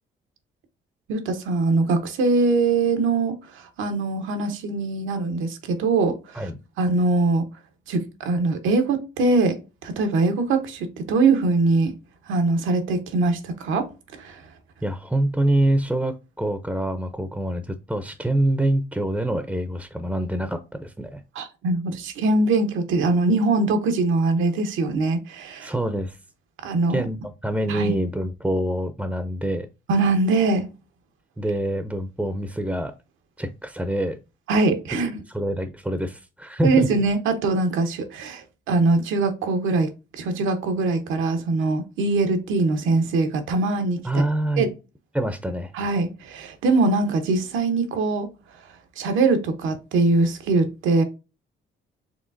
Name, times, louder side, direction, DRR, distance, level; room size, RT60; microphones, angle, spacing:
voice 1, 1.1-6.5 6.8-7.5 7.9-9.6 9.8-11.9 12.3-13.9 14.2-14.4 21.3-25.7 26.6-27.1 27.7-27.9 29.9-30.7 34.5-35.2 36.6-44.2 44.6-44.7 45.7-48.3 49.0-51.0, right 3 dB, 85° right, 0.9 m, -22 dB
voice 2, 14.8-21.2 25.6-26.2 26.9-29.7 31.4-32.9 33.4-34.2 35.3-36.9 44.0-44.7 45.1-45.7, right 1 dB, 5° right, 0.5 m, -25 dB
5.0 x 3.3 x 2.6 m
cardioid pair, 90°, 20 cm